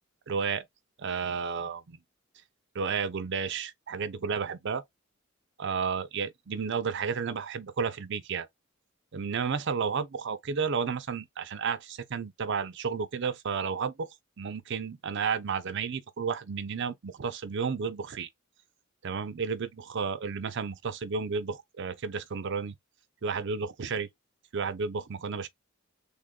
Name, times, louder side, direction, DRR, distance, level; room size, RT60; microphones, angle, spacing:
voice 1, 0.3-0.7 1.0-2.0 2.7-4.8 5.6-8.5 9.1-14.1 14.4-18.3 19.0-22.8 23.2-24.1 24.5-25.5, right 5 dB, 60° right, 0.5 m, -32 dB
3.5 x 2.2 x 3.7 m
head